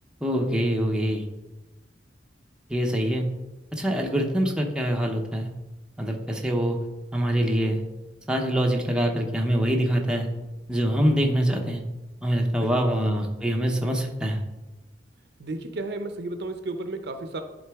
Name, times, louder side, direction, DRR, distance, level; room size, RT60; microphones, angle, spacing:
voice 1, 0.2-1.2 2.7-3.3 3.7-5.5 6.0-6.8 7.1-7.8 8.3-10.3 10.7-11.8 12.2-14.4, equal, 5° right, 1 dB, 0.7 m, -24 dB
voice 2, 12.6-13.0 15.4-17.4, right 2 dB, 65° right, 8 dB, 0.6 m, -33 dB
10.5 x 3.8 x 3.5 m, 1.0 s
head